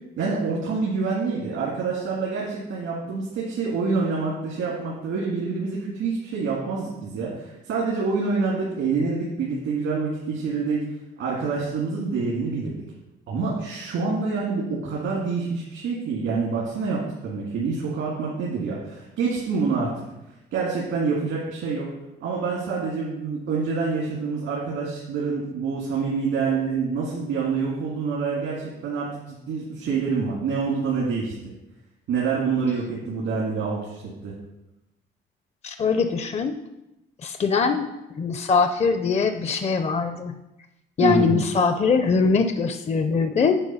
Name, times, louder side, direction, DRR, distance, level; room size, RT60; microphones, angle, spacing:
voice 1, 0.2-10.8 11.2-12.8 13.3-19.9 20.5-21.9 22.2-31.3 32.1-34.3 41.0-41.3, right 4 dB, 85° right, -5 dB, 2.0 m, -26 dB
voice 2, 35.6-36.6 37.2-37.9 38.2-40.3 41.0-43.6, left 5 dB, 35° left, 8 dB, 0.5 m, -22 dB
8.9 x 4.2 x 5.5 m, 0.94 s
cardioid pair, 90°, 20 cm